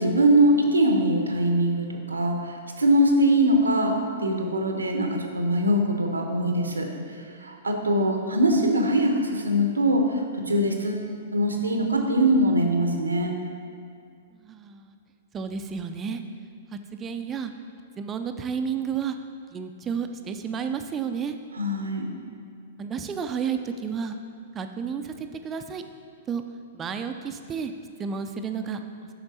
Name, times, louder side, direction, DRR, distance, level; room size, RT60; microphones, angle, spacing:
voice 1, 0.0-6.9 7.4-11.0 11.3-13.4 21.6-22.1, right 1 dB, 85° right, 3 dB, 1.0 m, -22 dB
voice 2, 14.4-15.0 15.3-16.2 16.7-17.5 18.0-19.2 19.5-21.4 22.8-24.2 24.5-25.8 26.3-26.4 26.7-27.7 28.0-28.8, right 6 dB, 20° right, 7 dB, 0.5 m, -31 dB
8.7 x 5.9 x 4.1 m, 2.3 s
figure-of-eight pair, 110°, 0 cm